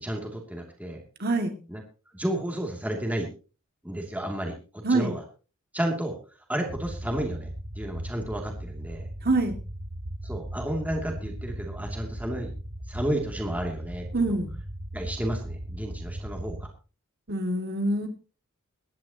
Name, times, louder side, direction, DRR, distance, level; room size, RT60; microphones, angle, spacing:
voice 1, 0.0-1.0 1.7-1.8 2.1-3.3 3.8-5.2 5.7-6.2 6.5-7.5 7.8-9.1 10.2-12.5 12.9-14.1 14.9-16.7, right 1 dB, 5° right, 1 dB, 2.7 m, -32 dB
voice 2, 1.2-1.5 4.8-5.1 9.2-9.6 14.1-14.5 17.3-18.1, right 2 dB, 50° right, 5 dB, 2.3 m, -25 dB
sound 1, 6.7-16.7, right 1 dB, 65° right, 2.9 m, -37 dB
22.5 x 10.5 x 3.0 m, 0.35 s
head